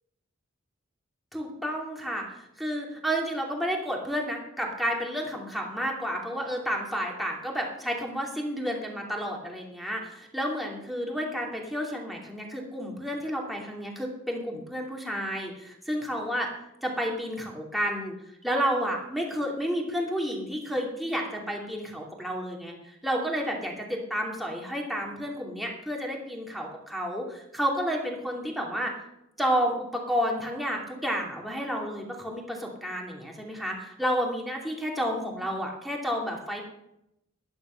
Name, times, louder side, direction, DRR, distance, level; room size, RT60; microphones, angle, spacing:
voice 1, 1.3-16.5 16.8-18.1 18.4-28.9 29.4-36.6, equal, ahead, -1 dB, 2.7 m, -31 dB
12.0 x 10.5 x 5.8 m, 0.83 s
head